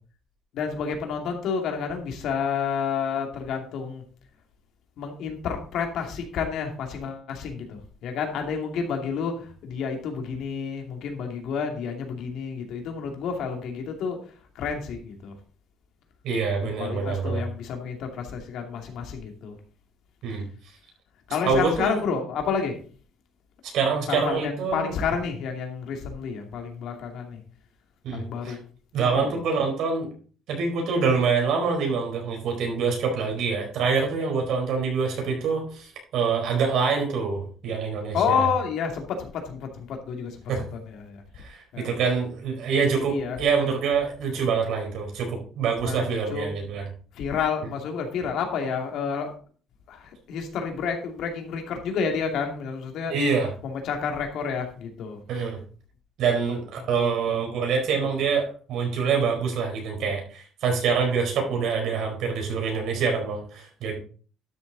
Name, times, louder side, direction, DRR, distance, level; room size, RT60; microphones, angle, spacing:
voice 1, 0.5-4.0 5.0-14.2 14.5-15.3 16.6-19.6 21.3-22.8 24.1-27.4 28.1-28.6 29.1-29.2 38.1-41.2 41.7-42.0 42.9-43.4 45.8-46.5 47.1-49.3 49.9-53.1 53.6-55.2 56.9-57.4, left 6 dB, 70° left, 4 dB, 2.5 m, -30 dB
voice 2, 16.2-17.4 20.2-20.4 21.4-22.0 23.6-24.9 28.0-28.6 28.9-30.1 30.5-38.5 40.5-40.6 41.4-46.9 53.1-53.5 55.3-55.6 56.2-64.0, right 5 dB, 70° right, 2 dB, 4.4 m, -25 dB
12.0 x 6.7 x 4.1 m, 0.40 s
cardioid pair, 135°, 0 cm